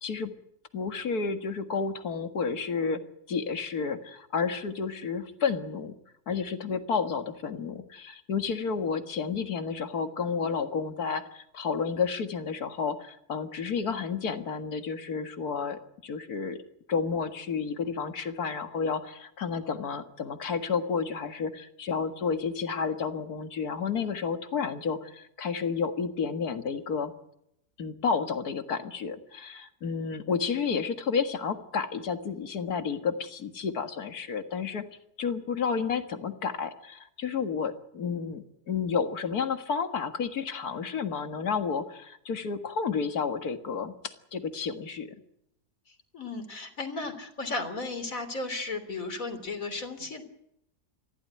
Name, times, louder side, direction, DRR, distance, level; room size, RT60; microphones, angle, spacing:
voice 1, 0.0-0.3 0.7-3.0 3.3-5.9 6.3-16.6 16.9-27.1 27.8-34.8 35.2-45.1, left 5 dB, 75° left, 8 dB, 2.3 m, -31 dB
voice 2, 45.9-50.2, left 3 dB, 60° left, 8 dB, 3.7 m, -35 dB
24.0 x 15.5 x 9.5 m, 0.80 s
omnidirectional pair, 1.6 m